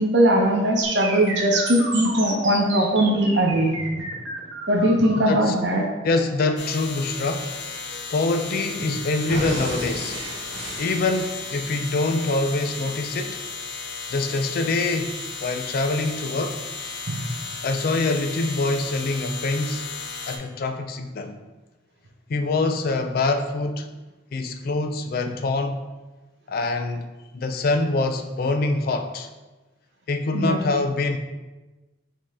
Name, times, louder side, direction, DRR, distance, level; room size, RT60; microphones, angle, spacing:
voice 1, 0.0-3.7 4.7-5.9 17.1-17.2 30.3-30.6, right 1 dB, 65° right, 1 dB, 0.7 m, -20 dB
sound 1, 0.8-8.8 9.3-11.8, right 2 dB, 85° right, 1.0 m, -33 dB
voice 2, 6.0-7.5 8.1-10.2 10.8-13.4 14.1-16.6 17.6-19.9 20.3-21.4 22.3-23.9 24.3-25.8 26.5-27.1 27.3-29.3 30.1-31.2, left 3 dB, 50° left, 7 dB, 0.4 m, -25 dB
sound 2, 6.6-20.4, left 4 dB, 75° left, 0.7 m, -35 dB
5.2 x 2.9 x 3.5 m, 1.1 s
head